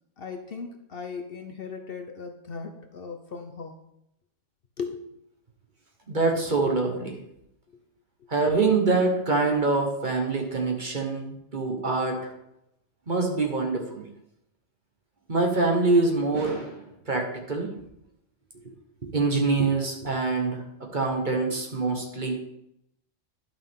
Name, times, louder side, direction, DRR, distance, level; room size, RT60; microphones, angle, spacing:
voice 1, 0.2-3.7 4.8-5.0, left 5 dB, 55° left, 6 dB, 0.9 m, -37 dB
voice 2, 6.1-7.2 8.3-12.3 13.1-14.1 15.3-17.7 19.0-22.3, right 3 dB, 40° right, 2 dB, 1.4 m, -25 dB
11.0 x 5.9 x 3.7 m, 0.79 s
omnidirectional pair, 1.3 m